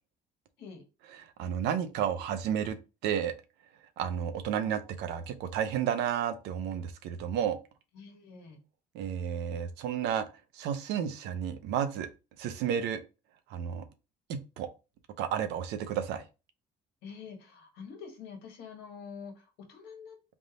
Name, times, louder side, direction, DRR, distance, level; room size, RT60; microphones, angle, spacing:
voice 1, 1.2-2.8 3.0-3.3 4.0-7.6 8.9-10.3 10.5-12.1 12.4-13.0 13.5-13.9 14.3-14.7 15.2-16.2, right 9 dB, 85° right, 0.7 m, -32 dB
voice 2, 7.9-8.6 17.0-20.2, left 5 dB, 85° left, 1.5 m, -46 dB
3.5 x 2.5 x 4.0 m
cardioid pair, 110°, 17 cm